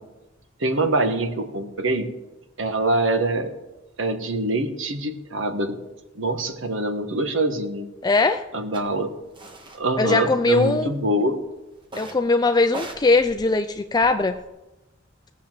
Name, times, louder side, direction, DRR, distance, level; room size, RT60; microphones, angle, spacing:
voice 1, 0.6-2.1 2.6-3.5 4.0-5.8 6.1-7.9 8.5-9.1 9.8-11.4, right 2 dB, 70° right, 7 dB, 1.4 m, -24 dB
voice 2, 8.0-8.4 10.0-10.9 12.0-14.4, left 3 dB, 20° left, 8 dB, 0.4 m, -20 dB
sound 1, 8.7-8.8 9.3-9.8 10.1-10.9 11.8-12.3 12.6-14.4, right 1 dB, 25° right, 1.5 m, -40 dB
17.5 x 7.1 x 7.4 m, 1.0 s
head